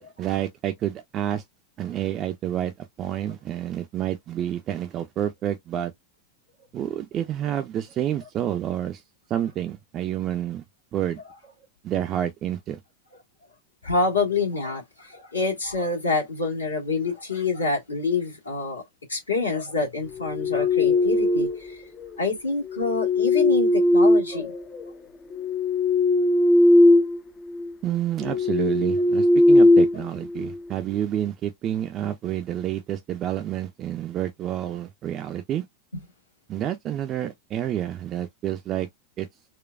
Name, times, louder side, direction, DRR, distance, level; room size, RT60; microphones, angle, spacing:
voice 1, 0.0-1.4 1.8-5.9 6.7-9.0 9.3-10.6 10.9-11.2 11.8-12.8 27.8-35.6 36.5-38.9 39.2-39.3, right 11 dB, 30° right, 0.5 m, -29 dB
voice 2, 13.8-18.8 19.1-21.9 22.2-24.5, left 3 dB, 75° left, 1.6 m, -27 dB
sound 1, 20.2-21.7 22.7-24.8 25.3-27.2 27.5-27.7 28.2-30.6, left 2 dB, 25° left, 0.5 m, -19 dB
4.2 x 2.3 x 2.3 m
figure-of-eight pair, 90°, 0 cm